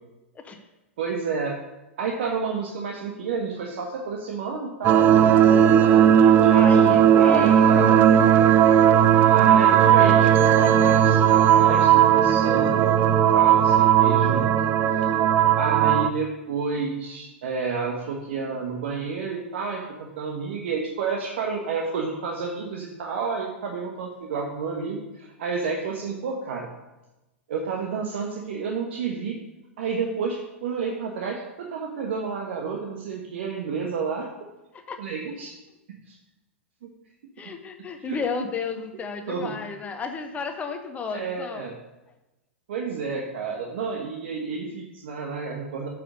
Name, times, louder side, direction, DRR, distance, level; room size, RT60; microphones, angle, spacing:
voice 1, 1.0-1.6 2.0-6.9 7.1-8.0 9.3-14.5 15.0-15.1 15.6-26.7 27.5-29.3 29.8-34.3 35.0-35.5 36.1-36.2 36.8-36.9 38.0-38.5 39.3-39.5 41.1-41.8 42.7-45.9, right 5 dB, 60° right, 1 dB, 1.2 m, -30 dB
sound 1, 4.8-16.1, right 9 dB, 30° right, 0.5 m, -17 dB
voice 2, 6.5-7.8 34.9-35.0 37.4-41.7, left 5 dB, 20° left, 6 dB, 0.8 m, -32 dB
8.7 x 5.0 x 6.4 m, 1.0 s
figure-of-eight pair, 100°, 7 cm